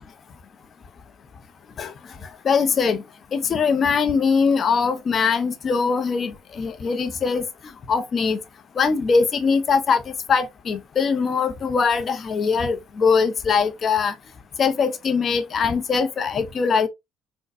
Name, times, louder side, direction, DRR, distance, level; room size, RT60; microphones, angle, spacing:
voice 1, 2.2-3.0 3.3-7.5 7.9-8.4 8.8-14.1 14.6-16.9, left 5 dB, 45° left, 0.6 m, -22 dB
4.0 x 2.2 x 2.5 m
supercardioid pair, 75°, 0 cm